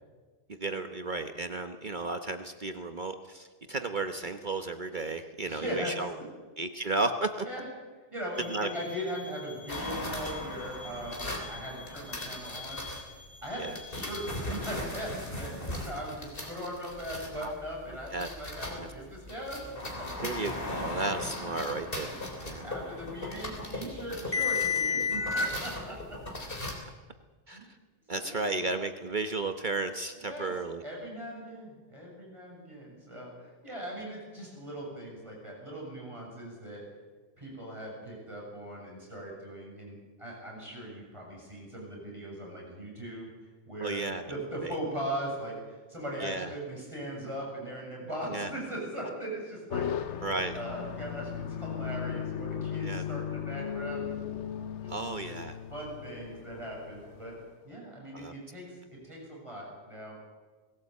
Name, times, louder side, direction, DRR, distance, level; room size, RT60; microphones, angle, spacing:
voice 1, 0.5-6.1 6.6-7.3 8.5-8.7 13.6-13.8 17.4-17.5 18.1-18.3 18.8-18.9 20.2-22.1 22.4-22.7 27.5-27.8 28.1-30.8 43.8-44.2 44.6-44.7 46.2-46.5 48.3-48.5 50.2-50.6 52.8-53.0 54.9-55.6 58.1-58.3, right 3 dB, 45° right, 8 dB, 1.1 m, -33 dB
voice 2, 5.4-5.9 7.4-7.6 8.1-13.0 13.4-20.1 22.1-22.2 22.6-26.2 27.5-27.6 28.1-28.5 30.2-30.5 30.8-36.8 37.4-43.3 43.7-44.0 44.3-54.1 54.8-54.9 55.3-55.4 55.7-57.4 57.6-60.2, equal, 25° right, -3 dB, 7.6 m, -39 dB
sound 1, 8.3-14.7, left 4 dB, 10° left, 2.4 m, -48 dB
sound 2, 9.7-13.0 13.8-18.9 19.3-26.7, left 3 dB, 50° left, 3.7 m, -35 dB
sound 3, 49.7-57.4, left 8 dB, 75° left, 1.2 m, -37 dB
20.0 x 17.5 x 8.4 m, 1.4 s
omnidirectional pair, 1.2 m